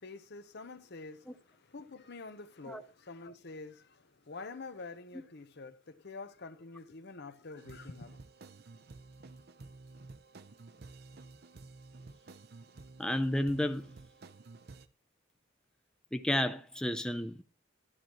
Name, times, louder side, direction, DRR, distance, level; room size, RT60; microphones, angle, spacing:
voice 1, 0.0-8.2, left 3 dB, 55° left, 0.8 m, -47 dB
sound 1, 7.6-14.9, right 3 dB, 55° right, 0.6 m, -52 dB
voice 2, 13.0-13.9 16.1-17.4, left 1 dB, 5° left, 0.5 m, -32 dB
12.5 x 11.5 x 3.0 m
head